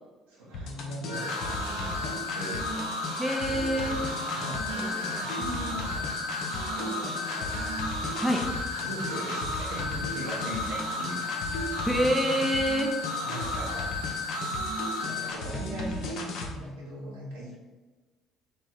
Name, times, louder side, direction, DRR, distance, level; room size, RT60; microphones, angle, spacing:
voice 1, 0.3-2.7 3.4-4.0 4.3-6.1 6.7-7.8 8.8-11.5 13.2-13.9 14.4-14.6 15.0-17.6, equal, 70° right, -4 dB, 1.2 m, -40 dB
sound 1, 0.5-16.5, left 2 dB, 55° left, 0.7 m, -36 dB
sound 2, 1.1-15.3, left 2 dB, 90° left, 0.8 m, -34 dB
voice 2, 3.2-4.0 8.2-8.4 11.9-12.9, equal, 5° right, 2 dB, 0.6 m, -26 dB
3.6 x 3.0 x 4.5 m, 1.3 s
figure-of-eight pair, 55°, 0 cm